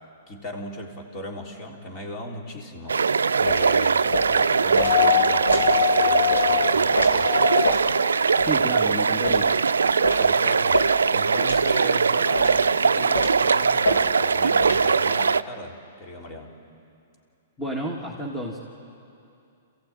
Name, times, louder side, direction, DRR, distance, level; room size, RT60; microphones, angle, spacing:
voice 1, 0.3-7.5 10.2-16.5, left 1 dB, 35° left, 1 dB, 3.5 m, -37 dB
sound 1, 2.9-15.4, right 5 dB, 85° right, 0.4 m, -21 dB
sound 2, 3.5-3.7 4.1-4.3 4.8-4.9 5.5-5.7 6.3-6.5 7.0-7.1 7.6-7.9 8.4-8.5 9.2-9.5 10.0-10.3 10.7-10.9 11.5-11.7 12.3-12.6 13.1-13.4 13.8-14.0 14.6-14.8, left 1 dB, 90° left, 3.0 m, -27 dB
sound 3, 4.8-8.0 9.4-9.5, left 13 dB, 55° left, 0.5 m, -24 dB
voice 2, 8.4-9.5 17.6-18.6, right 1 dB, 10° left, -1 dB, 2.1 m, -31 dB
27.5 x 15.0 x 9.1 m, 2.6 s
hypercardioid pair, 120°, 0 cm